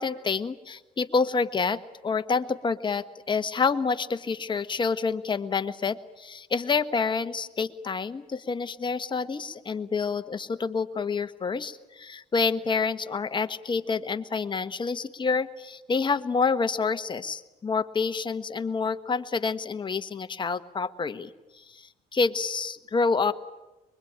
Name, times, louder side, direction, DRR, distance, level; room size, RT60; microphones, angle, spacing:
voice 1, 0.0-23.3, left 5 dB, 30° left, 10 dB, 1.4 m, -28 dB
24.5 x 22.5 x 8.9 m, 1.1 s
cardioid pair, 110°, 17 cm